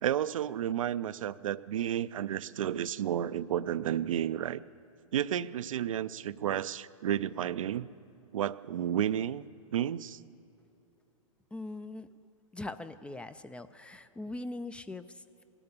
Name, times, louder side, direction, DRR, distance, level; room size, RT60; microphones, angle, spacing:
voice 1, 0.0-4.6 5.1-7.9 8.3-9.4 9.7-10.2, right 10 dB, 75° right, 15 dB, 0.4 m, -31 dB
voice 2, 11.5-12.1 12.5-15.4, left 2 dB, 5° left, 12 dB, 0.3 m, -41 dB
18.0 x 11.0 x 7.1 m, 2.7 s
hypercardioid pair, 115°, 17 cm